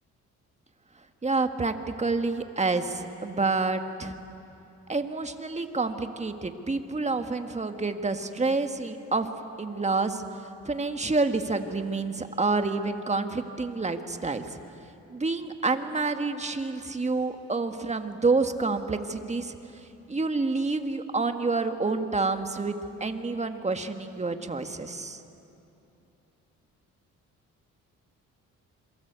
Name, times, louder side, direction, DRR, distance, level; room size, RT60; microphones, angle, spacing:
voice 1, 1.2-4.1 4.9-9.3 9.6-10.2 10.7-14.6 15.1-19.6 20.1-22.8 23.0-25.2, right 3 dB, 20° right, 7 dB, 1.8 m, -28 dB
27.5 x 23.0 x 8.3 m, 2.8 s
cardioid pair, 90°, 30 cm